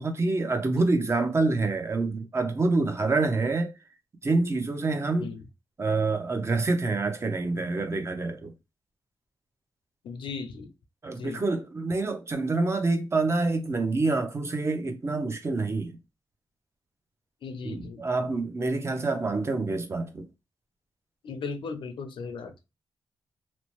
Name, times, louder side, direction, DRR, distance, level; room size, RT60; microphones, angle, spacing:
voice 1, 0.0-3.7 4.2-5.3 5.8-8.5 11.0-16.0 17.6-20.3, right 3 dB, 30° right, 0.6 m, -27 dB
voice 2, 10.0-10.7 11.2-11.4 17.4-18.0 21.2-22.5, left 5 dB, 75° left, 0.5 m, -37 dB
2.8 x 2.0 x 3.0 m
wide cardioid pair, 105°, 8 cm